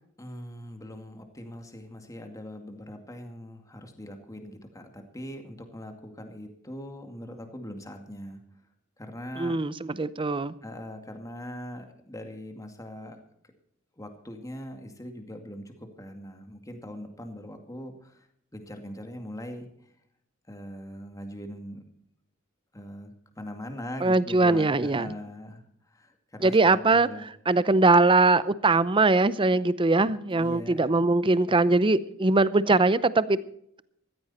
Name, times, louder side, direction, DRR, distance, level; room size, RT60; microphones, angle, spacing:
voice 1, 0.2-8.4 9.0-9.6 10.6-13.2 14.0-18.3 18.5-19.7 20.5-21.8 22.7-27.3 30.3-30.9, equal, 15° left, 5 dB, 2.2 m, -41 dB
voice 2, 9.4-10.5 24.0-25.1 26.4-27.1 27.5-33.4, right 3 dB, 25° right, 17 dB, 0.6 m, -21 dB
15.5 x 14.0 x 4.3 m, 0.71 s
head